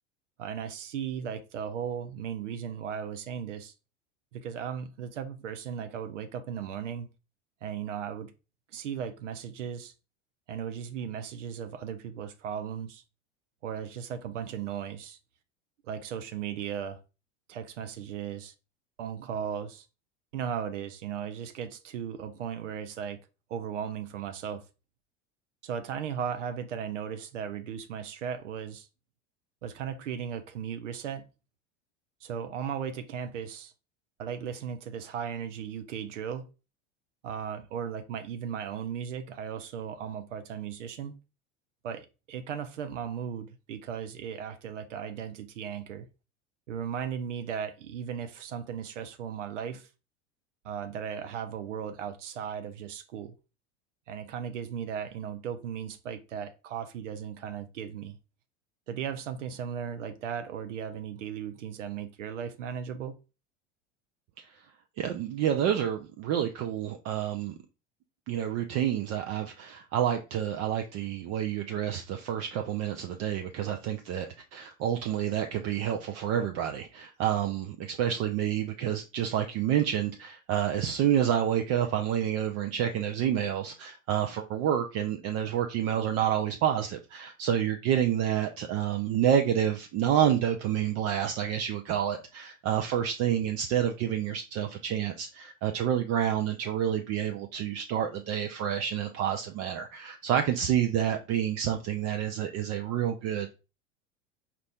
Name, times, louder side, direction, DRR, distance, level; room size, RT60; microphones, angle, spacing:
voice 1, 0.4-3.7 4.3-7.1 7.6-8.3 8.7-9.9 10.5-13.0 13.6-15.2 15.8-17.0 17.5-18.5 19.0-19.9 20.3-23.2 23.5-24.7 25.6-28.9 29.6-31.3 32.2-33.7 34.2-36.5 37.2-41.2 41.8-46.1 46.7-49.9 50.6-53.3 54.1-58.2 58.9-63.2, right 8 dB, 80° right, 0.6 m, -36 dB
voice 2, 65.0-67.5 68.3-74.3 74.5-103.5, right 10 dB, 45° right, 0.5 m, -28 dB
4.4 x 2.5 x 3.4 m
hypercardioid pair, 90°, 36 cm